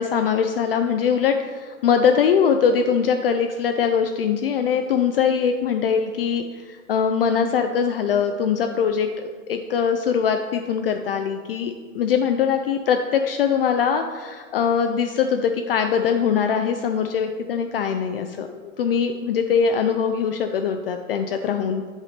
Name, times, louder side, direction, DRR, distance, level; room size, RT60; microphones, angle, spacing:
voice 1, 0.0-21.8, left 7 dB, 45° left, 6 dB, 0.4 m, -22 dB
8.0 x 4.8 x 4.3 m, 1.6 s
hypercardioid pair, 140°, 40 cm